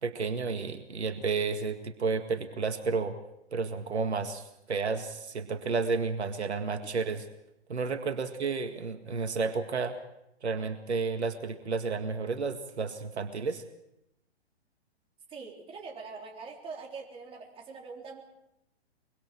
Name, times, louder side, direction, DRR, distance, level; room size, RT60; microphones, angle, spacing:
voice 1, 0.0-3.2 3.5-7.3 7.7-10.0 10.4-13.6, right 4 dB, 80° right, 7 dB, 2.0 m, -31 dB
voice 2, 15.3-18.2, right 4 dB, 15° right, 0 dB, 3.7 m, -43 dB
24.0 x 23.5 x 4.7 m, 0.84 s
hypercardioid pair, 130°, 33 cm